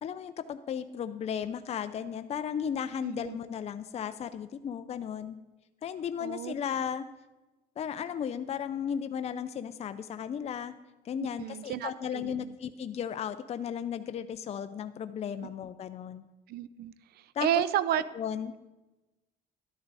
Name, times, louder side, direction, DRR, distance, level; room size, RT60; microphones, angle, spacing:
voice 1, 0.0-5.4 5.8-7.0 7.8-10.7 11.0-16.2 17.3-17.6 17.9-18.5, left 8 dB, 40° left, 10 dB, 0.5 m, -35 dB
voice 2, 3.0-3.4 6.2-6.5 11.2-12.6 16.5-16.9 17.4-18.0, right 12 dB, 65° right, 17 dB, 0.5 m, -31 dB
12.0 x 10.0 x 4.1 m, 1.1 s
cardioid pair, 110°, 17 cm